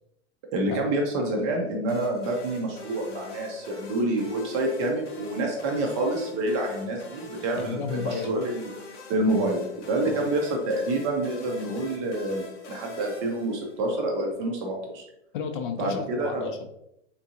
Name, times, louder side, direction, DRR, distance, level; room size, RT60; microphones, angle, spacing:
voice 1, 0.5-8.7 9.1-15.0 15.8-16.5, right 2 dB, 25° right, 1 dB, 0.4 m, -27 dB
sound 1, 1.9-14.1, left 3 dB, 75° left, 1.1 m, -44 dB
voice 2, 7.6-8.4 10.0-10.3 15.3-16.7, left 6 dB, 45° left, 6 dB, 0.4 m, -33 dB
3.6 x 2.6 x 2.7 m, 0.81 s
hypercardioid pair, 150°, 35 cm